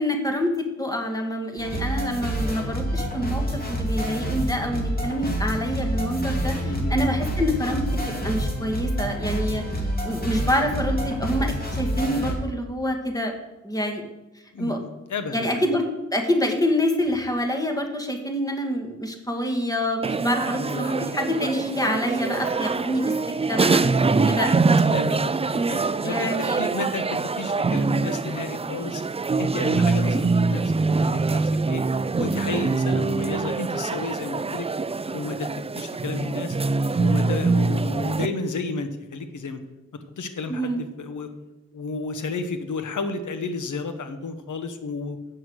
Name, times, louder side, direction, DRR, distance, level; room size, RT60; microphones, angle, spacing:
voice 1, 0.0-7.8 8.2-9.6 10.0-13.3 13.6-14.1 14.6-14.8 15.3-23.1 23.5-23.8 24.3-24.5 26.0-26.7 40.5-40.8, equal, 10° left, 3 dB, 1.8 m, -26 dB
sound 1, 1.6-12.3, equal, 30° left, 2.6 m, -27 dB
voice 2, 6.6-7.0 14.5-15.7 20.5-21.0 24.8-29.0 29.4-31.8 32.2-34.7 35.1-35.5 35.7-36.6 37.0-39.6 40.2-41.3 41.7-45.2, left 3 dB, 80° left, 8 dB, 1.1 m, -32 dB
sound 2, 20.0-38.3, right 3 dB, 20° right, 0.4 m, -24 dB
7.8 x 6.2 x 7.9 m, 1.0 s
cardioid pair, 60°, 30 cm